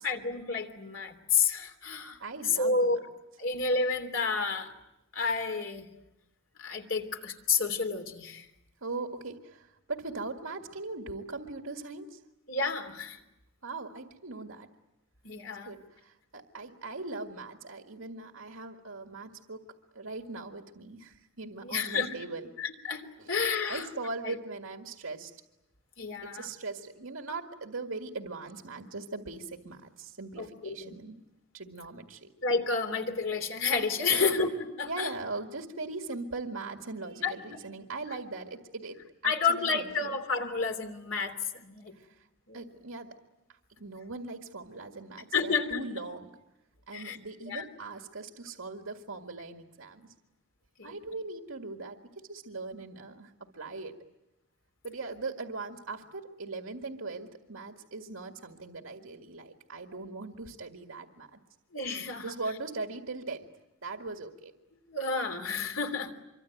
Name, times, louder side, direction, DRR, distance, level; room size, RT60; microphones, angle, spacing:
voice 1, 0.0-2.2 2.4-3.0 3.4-4.7 5.1-5.9 6.6-8.5 12.5-13.2 15.2-15.7 21.6-22.1 22.6-23.9 24.2-24.3 26.0-26.5 30.4-31.0 32.4-34.5 34.8-35.1 37.2-37.3 39.2-41.9 42.5-42.6 45.3-45.8 46.9-47.2 47.5-47.7 50.8-50.9 61.7-62.3 64.9-66.1, left 4 dB, 65° left, 5 dB, 3.2 m, -30 dB
voice 2, 2.2-3.0 8.8-12.2 13.6-14.7 15.5-19.6 19.9-22.5 23.2-23.3 23.7-25.3 26.2-31.2 31.5-32.3 34.1-34.4 34.8-40.1 41.9-42.3 42.5-43.2 43.5-46.3 46.9-50.1 50.8-54.0 54.8-61.4 62.2-63.5 63.8-64.5, right 3 dB, 85° right, 4 dB, 1.9 m, -40 dB
25.5 x 24.0 x 9.3 m, 0.91 s
head